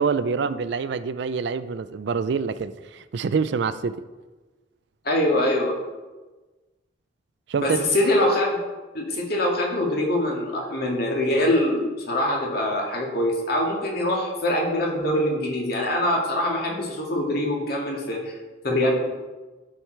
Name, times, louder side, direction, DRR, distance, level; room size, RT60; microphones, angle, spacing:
voice 1, 0.0-4.0 7.5-7.8, right 5 dB, 65° right, 14 dB, 0.4 m, -26 dB
voice 2, 5.0-5.8 7.6-8.6 8.9-18.3 18.6-18.9, left 1 dB, 55° left, -1 dB, 1.9 m, -23 dB
12.0 x 4.8 x 4.5 m, 1.2 s
head